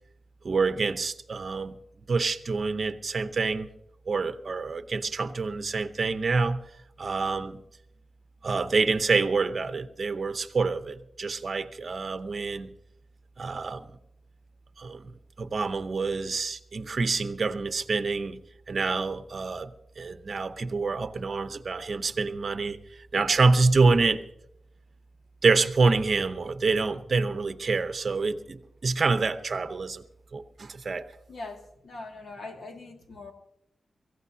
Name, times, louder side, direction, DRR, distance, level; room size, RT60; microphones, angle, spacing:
voice 1, 0.4-1.8 2.1-3.7 4.1-6.6 7.0-7.6 8.4-12.8 13.4-13.9 14.8-15.1 15.4-24.2 25.4-30.0 30.3-31.1, right 4 dB, 45° right, 0.8 m, -27 dB
voice 2, 31.3-33.3, left 3 dB, 65° left, 2.3 m, -41 dB
24.0 x 15.5 x 2.8 m
wide cardioid pair, 155°, 0 cm